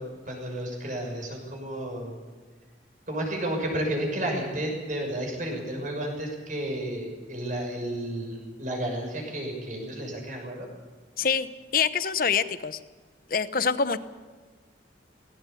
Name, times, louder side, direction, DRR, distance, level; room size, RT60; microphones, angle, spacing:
voice 1, 0.0-2.1 3.1-10.7, right 1 dB, 45° right, 1 dB, 6.5 m, -32 dB
voice 2, 11.2-12.8 13.3-14.0, left 6 dB, 50° left, 13 dB, 0.9 m, -25 dB
19.0 x 18.0 x 8.4 m, 1.4 s
head